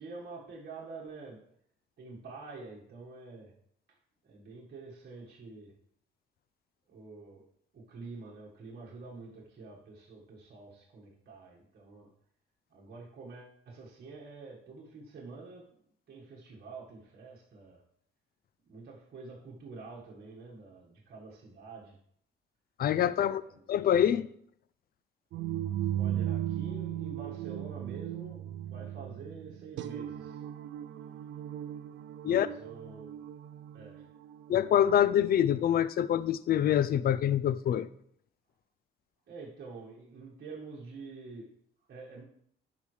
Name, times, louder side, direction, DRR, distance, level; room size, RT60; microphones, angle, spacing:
voice 1, 0.0-1.5 2.0-3.5 4.2-5.8 6.9-7.5 7.7-12.1 12.7-15.8 16.1-17.8 18.6-22.0 23.1-23.6 25.9-30.4 32.2-33.2 33.7-34.1 39.3-42.2, right 3 dB, 55° right, -4 dB, 1.6 m, -47 dB
voice 2, 22.8-23.4 23.7-24.3 32.2-32.5 34.5-37.9, left 10 dB, 50° left, 16 dB, 0.4 m, -25 dB
sound 1, 25.3-35.2, right 11 dB, 70° right, 0.4 m, -37 dB
10.5 x 5.1 x 3.2 m, 0.68 s
cardioid pair, 90°, 20 cm